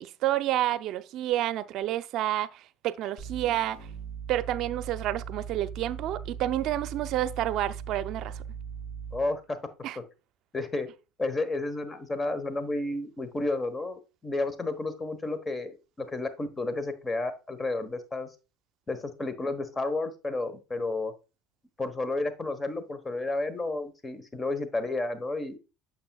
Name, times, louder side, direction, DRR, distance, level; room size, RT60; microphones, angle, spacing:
voice 1, 0.0-3.8 4.3-8.4 9.8-10.0, right 13 dB, 60° right, 0.6 m, -29 dB
sound 1, 3.2-9.3, right 7 dB, 50° left, 4.8 m, -39 dB
voice 2, 9.1-9.6 10.5-10.9 11.2-18.3 18.9-21.1 21.8-25.6, left 2 dB, 20° left, 1.2 m, -31 dB
8.7 x 7.1 x 2.3 m
supercardioid pair, 90°, 0 cm